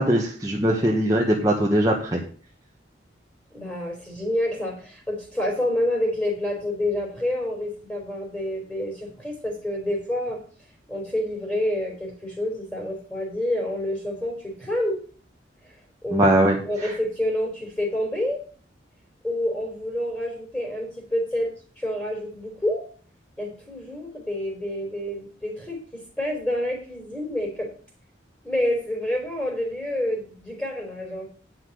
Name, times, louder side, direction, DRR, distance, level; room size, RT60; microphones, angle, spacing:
voice 1, 0.0-2.2 16.1-16.5, right 1 dB, 20° right, -2 dB, 1.3 m, -20 dB
voice 2, 3.5-10.4 10.9-15.0 15.6-15.7 16.0-16.3 16.6-18.4 19.2-21.5 21.8-22.8 23.4-27.7 28.4-31.3, left 1 dB, 5° left, 0 dB, 3.5 m, -28 dB
9.7 x 5.9 x 6.5 m, 0.43 s
head